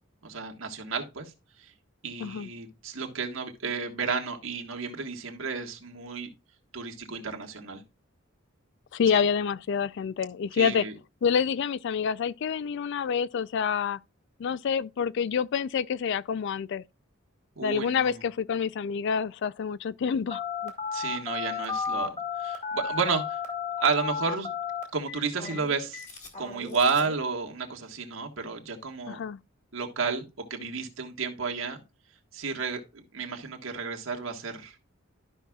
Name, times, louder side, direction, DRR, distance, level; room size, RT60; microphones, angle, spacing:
voice 1, 0.2-1.3 1.6-1.7 2.0-6.3 6.7-7.8 9.1-9.2 10.5-10.9 17.6-18.2 20.9-23.4 23.8-24.6 24.9-26.0 26.4-29.2 29.7-30.2 30.5-31.8 32.3-34.7, right 5 dB, 85° right, 1.6 m, -31 dB
voice 2, 8.9-10.8 11.2-14.0 14.4-16.8 17.6-20.7 29.1-29.4, left 7 dB, 60° left, 0.4 m, -27 dB
Telephone, 20.3-27.2, left 6 dB, 40° left, 2.2 m, -33 dB
12.5 x 5.7 x 2.3 m
head